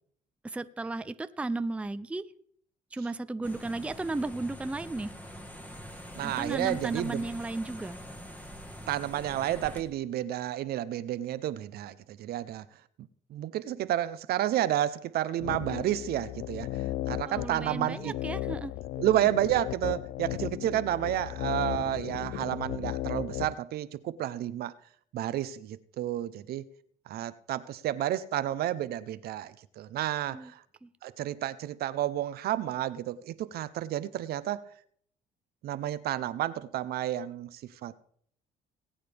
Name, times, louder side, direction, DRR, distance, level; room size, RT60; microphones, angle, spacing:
voice 1, 0.4-2.3 2.9-5.1 6.2-8.0 17.2-18.7 30.3-30.5 30.8-30.9, right 2 dB, 5° right, 0.4 m, -34 dB
sound 1, 3.4-9.8, equal, 10° left, 1.5 m, -44 dB
voice 2, 6.1-7.2 8.9-12.6 13.3-16.7 17.1-18.1 19.0-24.7 25.1-26.6 27.1-30.6 31.0-34.6 35.6-38.0, right 12 dB, 65° right, 0.7 m, -31 dB
sound 2, 15.4-23.5, left 15 dB, 80° left, 0.4 m, -36 dB
19.5 x 8.8 x 3.4 m
cardioid pair, 110°, 17 cm